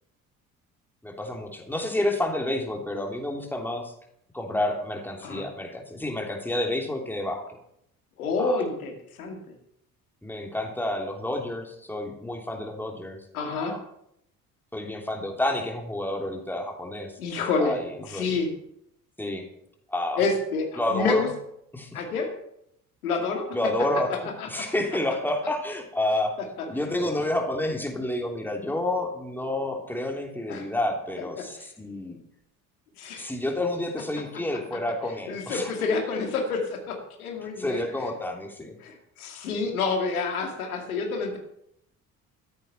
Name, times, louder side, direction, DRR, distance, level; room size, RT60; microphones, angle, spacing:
voice 1, 1.0-3.9 4.3-7.4 8.4-8.6 10.2-13.2 13.6-13.8 14.7-17.2 17.6-18.3 19.2-19.4 19.9-20.2 20.8-21.3 21.7-21.9 23.5-26.4 26.7-32.2 33.2-35.7 37.6-38.7, left 1 dB, 5° left, 2 dB, 3.2 m, -29 dB
voice 2, 8.2-9.5 13.3-13.8 17.2-17.8 18.1-18.5 20.2-21.3 21.9-22.3 23.0-23.4 24.4-24.6 30.5-30.7 31.4-31.7 33.0-33.3 35.3-38.1 38.8-41.4, left 4 dB, 75° left, 3 dB, 2.5 m, -28 dB
13.5 x 10.5 x 5.8 m, 0.75 s
figure-of-eight pair, 55°, 44 cm